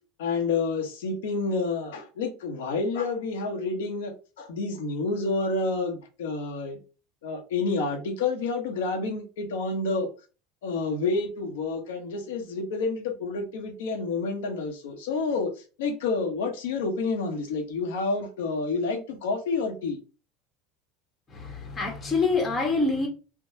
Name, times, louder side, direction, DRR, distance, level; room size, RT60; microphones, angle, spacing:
voice 1, 0.2-4.1 4.4-6.8 7.2-10.1 10.6-15.5 15.8-20.0, left 3 dB, 90° left, 0.9 m, -29 dB
voice 2, 21.3-23.1, left 3 dB, 25° left, 1.1 m, -26 dB
3.5 x 2.1 x 2.7 m
supercardioid pair, 115°, 0 cm